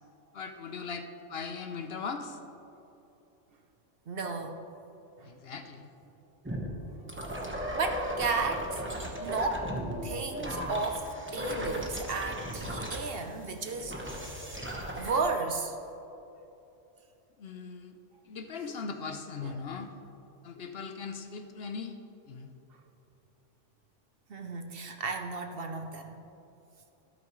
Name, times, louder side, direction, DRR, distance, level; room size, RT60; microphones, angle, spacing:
voice 1, 0.3-2.4 5.2-5.9 17.4-18.0 18.2-19.9 20.4-22.0 22.3-22.5, left 5 dB, 60° left, 6 dB, 0.9 m, -39 dB
voice 2, 4.1-4.6 7.7-8.8 9.2-9.7 10.0-11.0 11.3-14.2 15.0-15.8 19.4-19.5 24.3-26.2, right 4 dB, 55° right, 5 dB, 0.9 m, -33 dB
sound 1, 6.5-15.2, equal, 10° right, 1.1 m, -36 dB
13.0 x 13.0 x 3.1 m, 3.0 s
omnidirectional pair, 1.3 m